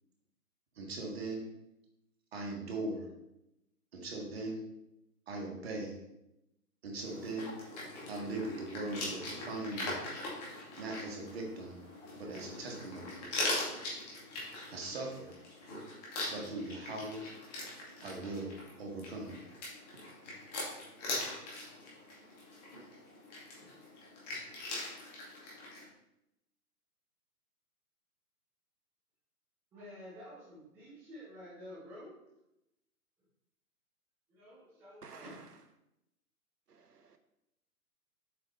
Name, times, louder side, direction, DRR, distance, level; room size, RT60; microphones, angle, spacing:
voice 1, 0.7-1.5 2.3-3.1 3.9-4.7 5.3-6.0 6.8-7.6 8.1-10.0 10.8-11.9 12.1-13.3 14.7-15.4 16.3-17.3 18.0-19.4 19.9-20.0, right 2 dB, 40° right, 1.8 m, -40 dB
sound 1, 7.0-25.8, left 2 dB, 25° left, 2.0 m, -42 dB
voice 2, 29.7-32.1 34.3-35.5, equal, 5° right, 0.8 m, -50 dB
voice 3, 35.0-35.4 36.7-37.2, right 5 dB, 85° right, 0.7 m, -53 dB
7.7 x 4.7 x 3.1 m
figure-of-eight pair, 135°, 46 cm